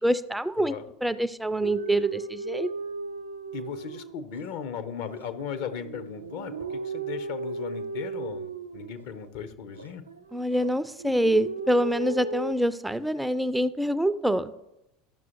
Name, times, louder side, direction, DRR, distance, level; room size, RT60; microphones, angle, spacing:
voice 1, 0.0-0.7 1.0-2.7 10.3-14.5, right 1 dB, 5° right, 13 dB, 0.3 m, -25 dB
sound 1, 1.6-4.5 5.1-9.3 9.7-10.7 11.0-12.5, right 4 dB, 85° right, 0.4 m, -36 dB
voice 2, 3.5-10.0, left 7 dB, 60° left, 12 dB, 0.6 m, -37 dB
12.0 x 6.1 x 3.0 m, 0.90 s
figure-of-eight pair, 75°, 0 cm